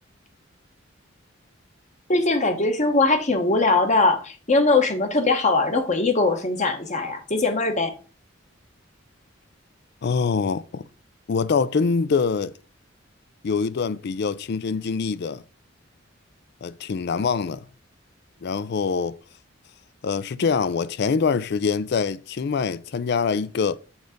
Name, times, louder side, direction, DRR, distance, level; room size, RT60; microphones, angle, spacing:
voice 1, 2.1-7.9, left 3 dB, 35° left, 1.1 m, -21 dB
voice 2, 10.0-10.8 11.3-12.5 13.4-15.4 16.6-17.6 18.4-19.2 20.0-23.8, left 5 dB, 55° left, 0.4 m, -24 dB
7.2 x 3.9 x 5.1 m
head